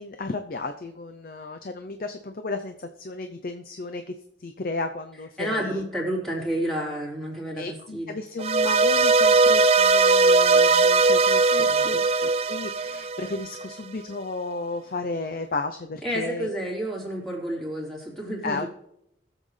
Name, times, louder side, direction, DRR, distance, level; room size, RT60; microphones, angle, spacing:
voice 1, 0.0-4.1 4.4-5.8 7.6-16.6 18.4-18.7, left 3 dB, 50° left, 7 dB, 0.6 m, -34 dB
voice 2, 5.4-8.1 11.5-12.3 16.0-18.7, right 1 dB, ahead, -5 dB, 3.6 m, -30 dB
sound 1, 8.4-13.7, right 3 dB, 30° right, 0.3 m, -19 dB
21.0 x 7.6 x 3.3 m, 0.80 s
head